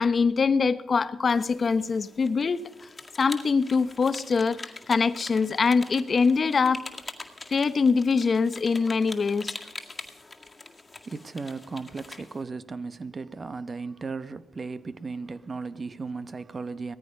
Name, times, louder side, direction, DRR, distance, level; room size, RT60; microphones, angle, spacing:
voice 1, 0.0-2.9 3.2-6.8 7.5-9.6, left 5 dB, 45° left, 0.9 m, -23 dB
sound 1, 1.3-12.4, left 3 dB, 25° left, 2.0 m, -43 dB
voice 2, 11.0-17.0, right 4 dB, 40° right, 1.0 m, -36 dB
18.5 x 14.0 x 5.4 m
cardioid pair, 65°, 0 cm